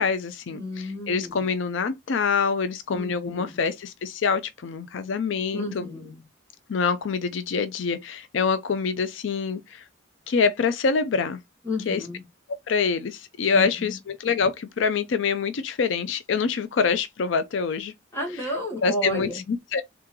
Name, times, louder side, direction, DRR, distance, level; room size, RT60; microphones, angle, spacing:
voice 1, 0.0-5.9 6.7-9.8 10.3-11.4 11.9-12.0 12.7-17.9 18.8-19.8, left 5 dB, 75° left, 0.4 m, -25 dB
voice 2, 0.5-1.4 2.9-3.5 5.5-6.2 11.6-12.2 13.5-14.0 18.1-19.4, left 1 dB, 15° left, 1.6 m, -32 dB
3.7 x 3.6 x 3.0 m
head